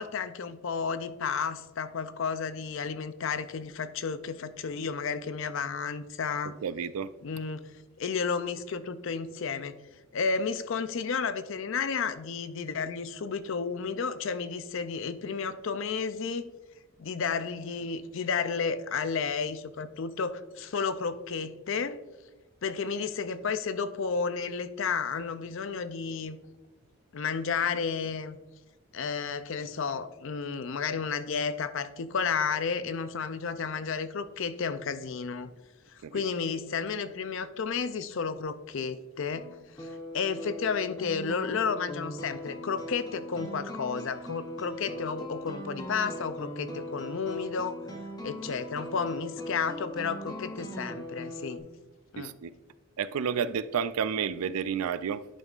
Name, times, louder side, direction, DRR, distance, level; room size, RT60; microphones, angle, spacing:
voice 1, 0.0-6.5 7.2-7.7 8.0-9.8 10.1-16.5 17.0-22.0 22.6-26.4 27.1-28.4 28.9-35.5 36.1-39.5 39.8-39.9 40.1-47.8 48.2-51.6 52.1-52.3, left 5 dB, 60° left, 0.4 m, -32 dB
voice 2, 6.6-7.1 36.0-36.2 52.2-52.5 53.0-55.2, right 7 dB, 80° right, 0.4 m, -30 dB
sound 1, 39.3-51.6, left 1 dB, 20° left, 0.8 m, -40 dB
11.0 x 5.4 x 2.4 m
head